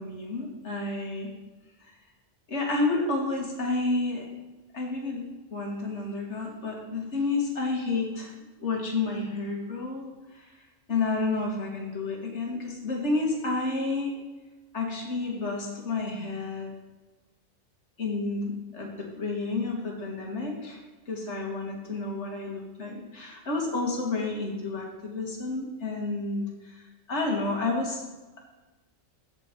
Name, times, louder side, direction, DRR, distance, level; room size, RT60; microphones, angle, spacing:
voice 1, 0.0-1.3 2.5-4.3 4.7-5.3 5.5-8.3 8.6-10.1 10.3-10.5 10.9-14.1 14.7-16.7 18.0-20.8 21.1-26.8 27.1-28.0, left 3 dB, 60° left, 0 dB, 2.2 m, -30 dB
14.5 x 5.2 x 4.4 m, 1.2 s
omnidirectional pair, 1.3 m